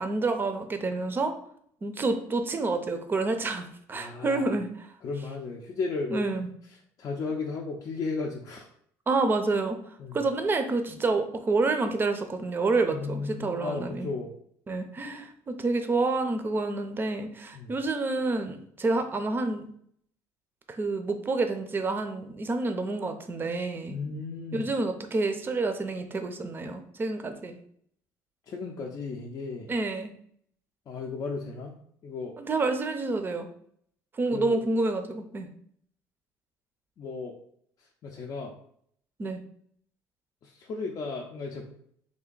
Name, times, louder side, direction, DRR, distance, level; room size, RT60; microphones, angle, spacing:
voice 1, 0.0-1.3 1.8-4.7 6.1-6.5 9.1-9.8 10.1-14.1 14.7-19.7 20.7-24.0 24.5-27.6 29.7-30.1 32.4-33.5 34.2-35.5 39.2-39.4, right 3 dB, 25° right, 7 dB, 0.5 m, -28 dB
voice 2, 3.9-4.6 5.0-8.7 10.0-10.2 12.9-14.3 17.5-17.8 23.9-24.7 28.5-29.7 30.9-31.7 32.0-32.3 34.3-34.6 37.0-37.4 37.8-38.5 40.4-41.7, left 4 dB, 45° left, -1 dB, 0.5 m, -35 dB
3.4 x 2.5 x 3.8 m, 0.66 s
cardioid pair, 105°, 8 cm